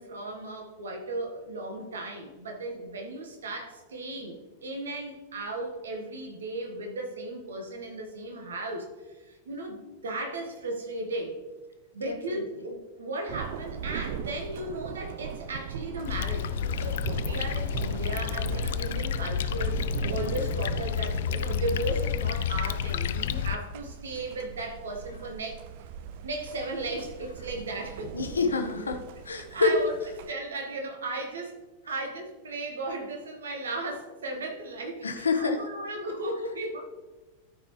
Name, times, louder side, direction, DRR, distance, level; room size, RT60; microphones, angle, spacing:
voice 1, 0.0-11.4 11.9-25.6 26.2-28.3 28.9-29.0 29.5-31.6 31.9-36.8, right 2 dB, 65° right, 3 dB, 1.4 m, -36 dB
voice 2, 12.0-12.4 28.1-29.0 29.2-29.7 35.0-35.6, left 4 dB, 75° left, 7 dB, 0.8 m, -27 dB
Thunder, 13.3-30.3, right 8 dB, 50° right, 0.4 m, -39 dB
sound 1, 16.0-23.6, left 9 dB, 55° left, 0.3 m, -30 dB
13.0 x 5.1 x 3.2 m, 1.2 s
figure-of-eight pair, 90°, 0 cm